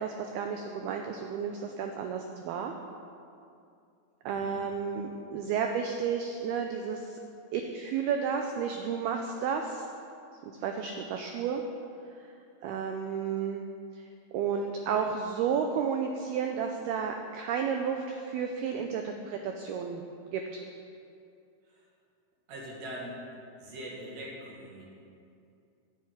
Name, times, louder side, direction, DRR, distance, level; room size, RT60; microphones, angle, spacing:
voice 1, 0.0-2.7 4.3-7.2 7.5-9.9 10.6-11.6 12.6-13.6 13.9-14.1 14.3-20.0 20.3-20.6, right 6 dB, 85° right, 4 dB, 2.2 m, -32 dB
voice 2, 22.5-23.2 23.6-24.9, right 1 dB, 65° right, -4 dB, 4.0 m, -42 dB
11.5 x 7.9 x 8.7 m, 2.5 s
omnidirectional pair, 5.3 m